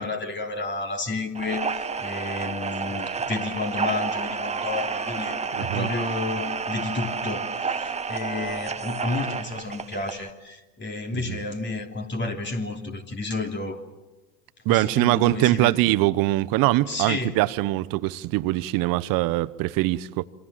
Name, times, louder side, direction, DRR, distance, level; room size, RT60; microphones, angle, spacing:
voice 1, 0.0-13.8 14.7-15.7 16.9-17.4, left 3 dB, 20° left, 3.3 m, -31 dB
sound 1, 1.3-10.3, right 5 dB, 15° right, 1.4 m, -30 dB
voice 2, 5.6-5.9 11.3-11.4 14.6-20.2, right 18 dB, 45° right, 1.1 m, -22 dB
27.5 x 26.0 x 7.6 m
hypercardioid pair, 95°, 47 cm